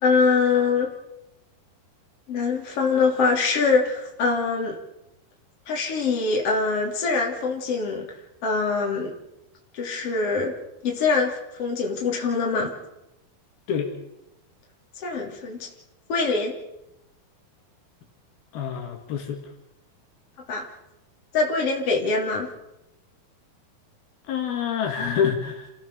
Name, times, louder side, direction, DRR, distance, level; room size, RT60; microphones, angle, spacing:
voice 1, 0.0-0.9 2.3-4.8 5.7-8.1 8.4-9.1 9.7-10.5 10.8-12.7 15.0-15.7 16.1-16.5 20.5-20.7 21.3-22.5, left 4 dB, 40° left, 0 dB, 4.0 m, -23 dB
voice 2, 18.5-19.4 24.3-25.7, left 7 dB, 75° left, 3 dB, 4.1 m, -26 dB
28.0 x 16.0 x 6.8 m, 0.88 s
omnidirectional pair, 4.4 m